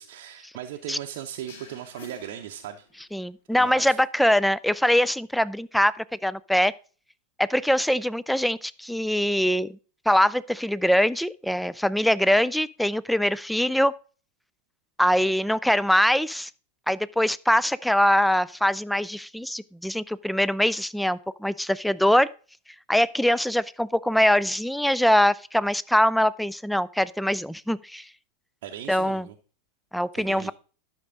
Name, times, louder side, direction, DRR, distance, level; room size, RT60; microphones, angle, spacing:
voice 1, 0.0-2.9 3.6-4.0 28.6-29.3 30.2-30.5, right 11 dB, 50° right, 0.7 m, -38 dB
sound 1, 1.5-3.2, left 3 dB, 60° left, 1.8 m, -48 dB
voice 2, 3.1-6.7 7.4-9.7 10.1-13.9 15.0-16.5 16.9-22.3 22.9-28.1 28.9-29.3 29.9-30.5, equal, ahead, 0.3 m, -23 dB
11.5 x 6.1 x 3.8 m
figure-of-eight pair, 90°, 0 cm